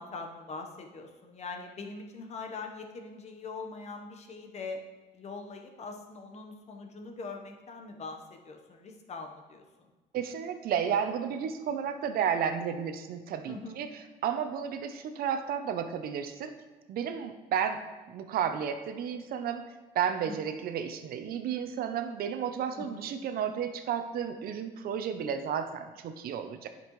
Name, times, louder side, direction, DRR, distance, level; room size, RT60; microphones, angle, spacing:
voice 1, 0.0-4.8 5.1-9.9 13.5-13.8 20.2-20.4 22.7-23.1, left 3 dB, 40° left, 3 dB, 1.1 m, -42 dB
voice 2, 10.1-13.9 14.2-16.5 16.9-17.8 18.1-19.6 19.9-26.7, right 8 dB, 60° right, 8 dB, 0.7 m, -32 dB
10.0 x 5.3 x 3.2 m, 1.3 s
cardioid pair, 110°, 17 cm